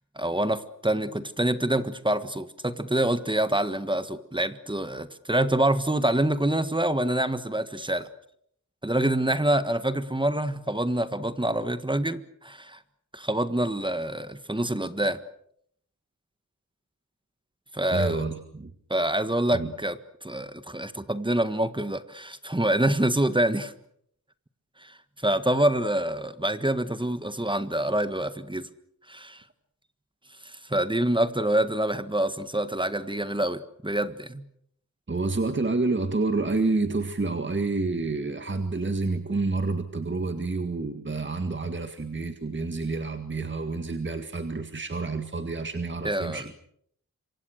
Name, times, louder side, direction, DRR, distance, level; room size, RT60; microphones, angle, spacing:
voice 1, 0.1-8.1 8.8-12.8 13.1-15.2 17.7-18.2 18.9-23.7 24.8-28.7 29.1-29.4 30.4-34.4 46.0-46.5, right 1 dB, 15° right, 11 dB, 1.5 m, -26 dB
voice 2, 17.9-18.7 19.5-19.7 35.1-46.5, right 3 dB, 35° right, 7 dB, 1.9 m, -28 dB
26.5 x 24.5 x 6.5 m, 0.70 s
wide cardioid pair, 90°, 34 cm